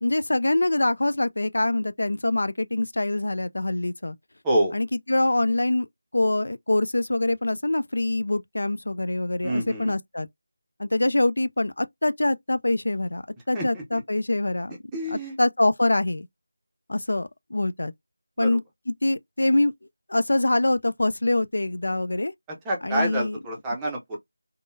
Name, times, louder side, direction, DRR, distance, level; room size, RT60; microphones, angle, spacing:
voice 1, 0.0-4.2 4.7-5.9 6.1-10.3 10.8-14.7 15.1-16.3 16.9-17.9 18.4-18.6 18.9-19.7 20.1-22.3 22.8-23.4, left 2 dB, 70° left, 0.4 m, -24 dB
voice 2, 4.4-4.8 9.4-9.9 13.5-14.0 14.9-15.4 18.4-18.6 22.6-24.2, right 1 dB, 5° right, 0.6 m, -27 dB
3.6 x 2.0 x 2.6 m
figure-of-eight pair, 175°, 0 cm